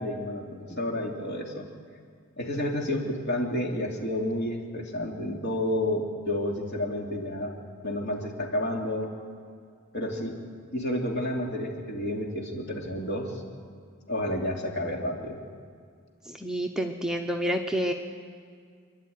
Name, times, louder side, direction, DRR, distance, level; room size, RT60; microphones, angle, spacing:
voice 1, 0.0-1.6 2.4-7.5 7.8-9.1 9.9-10.4 10.7-13.4 14.1-15.4, left 1 dB, 50° left, 0 dB, 2.9 m, -30 dB
voice 2, 16.3-17.9, equal, 5° right, 2 dB, 0.8 m, -29 dB
27.0 x 11.5 x 9.4 m, 2.1 s
head